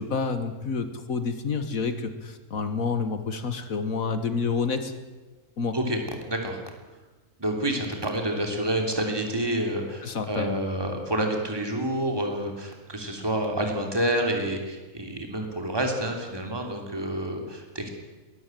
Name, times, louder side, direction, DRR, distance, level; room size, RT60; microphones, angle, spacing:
voice 1, 0.0-4.9 5.6-5.8 10.0-10.6, left 4 dB, 70° left, 9 dB, 1.9 m, -29 dB
voice 2, 6.3-6.6 7.4-17.9, right 1 dB, 15° right, 2 dB, 3.1 m, -28 dB
21.5 x 14.5 x 9.2 m, 1.2 s
omnidirectional pair, 1.5 m